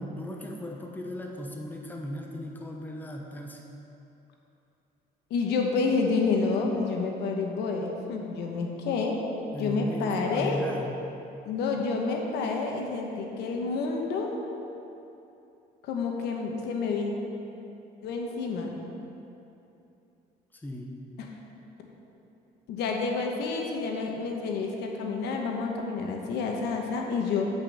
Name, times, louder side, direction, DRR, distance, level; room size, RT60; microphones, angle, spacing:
voice 1, 0.0-3.6 9.5-10.9 20.5-21.0, equal, 10° left, 0 dB, 1.0 m, -37 dB
voice 2, 5.3-9.2 9.6-10.6 11.5-14.4 15.8-17.1 18.0-18.7 22.7-27.5, left 4 dB, 80° left, 1 dB, 1.2 m, -29 dB
8.5 x 5.4 x 6.8 m, 2.8 s
cardioid pair, 110°, 17 cm